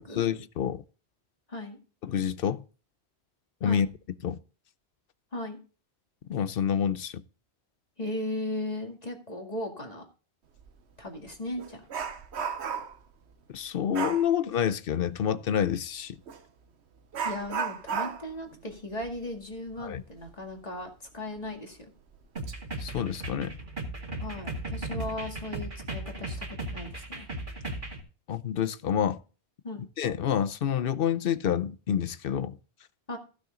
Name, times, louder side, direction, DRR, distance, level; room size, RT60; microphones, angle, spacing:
voice 1, 0.1-0.8 2.0-2.6 3.6-3.9 4.2-4.4 6.3-7.2 13.5-16.2 19.8-20.0 22.8-23.6 28.3-29.2 30.0-32.6, left 8 dB, 60° left, 0.8 m, -28 dB
voice 2, 8.0-10.0 11.0-11.9 17.2-21.9 24.2-27.3 29.6-29.8 33.1-33.2, left 1 dB, 35° left, 2.2 m, -37 dB
Dog, 10.6-10.7 11.1-13.1 13.9-14.3 16.3-16.4 17.1-20.4 20.7-20.8 21.4-21.5 22.1-22.5 22.9-23.1, right 6 dB, 80° right, 1.2 m, -35 dB
sound 1, 22.4-28.0, right 2 dB, 50° right, 2.4 m, -36 dB
15.0 x 6.2 x 3.7 m
omnidirectional pair, 1.1 m